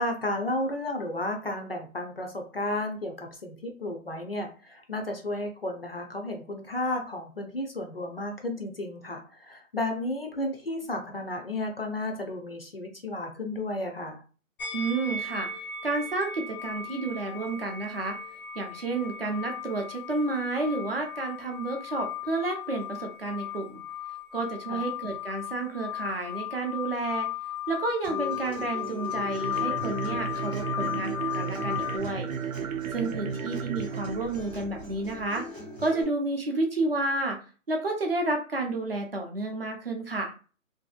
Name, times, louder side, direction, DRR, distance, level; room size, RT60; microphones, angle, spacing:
voice 1, 0.0-14.2 24.7-24.9 33.0-33.4, left 1 dB, 45° left, 3 dB, 0.4 m, -33 dB
sound 1, 14.6-32.0, left 9 dB, 85° left, 0.8 m, -36 dB
voice 2, 14.7-15.5 15.8-18.2 18.6-23.8 24.3-27.3 27.7-32.3 32.9-35.4 35.8-37.4 37.7-40.3, right 2 dB, 45° right, 2 dB, 0.5 m, -30 dB
Acoustic guitar, 28.0-36.0, left 1 dB, 15° right, 0.8 m, -42 dB
sound 2, 29.0-35.3, right 7 dB, 90° right, 0.6 m, -34 dB
2.6 x 2.5 x 2.3 m, 0.37 s
hypercardioid pair, 175°, 41 cm